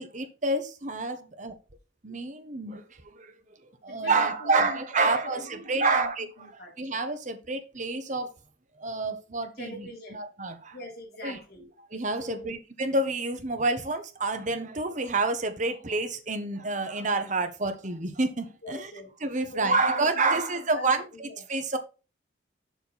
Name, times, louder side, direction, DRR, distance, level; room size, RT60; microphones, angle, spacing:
voice 1, 0.0-1.5 2.0-2.8 3.1-3.3 3.8-6.3 6.8-8.3 8.8-10.8 11.2-11.4 11.9-18.9 19.2-21.8, right 3 dB, 40° right, 1.2 m, -28 dB
voice 2, 3.9-6.1 6.4-6.7 9.6-10.2 10.7-11.7 12.2-12.5 18.6-19.1 19.5-21.5, left 1 dB, 55° left, 4.0 m, -42 dB
7.2 x 6.3 x 4.2 m
head